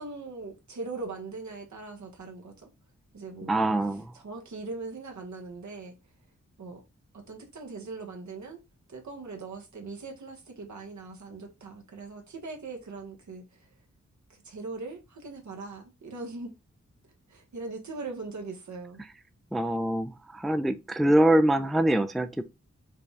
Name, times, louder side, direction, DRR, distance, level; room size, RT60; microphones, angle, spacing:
voice 1, 0.0-2.7 3.1-3.5 4.1-6.0 6.6-6.8 7.1-8.6 8.9-13.7 14.3-16.5 17.3-19.0, right 3 dB, 70° right, 1.2 m, -40 dB
voice 2, 3.5-4.1 19.5-22.4, right 1 dB, ahead, 0.4 m, -24 dB
4.9 x 2.3 x 3.3 m
cardioid pair, 40°, 30 cm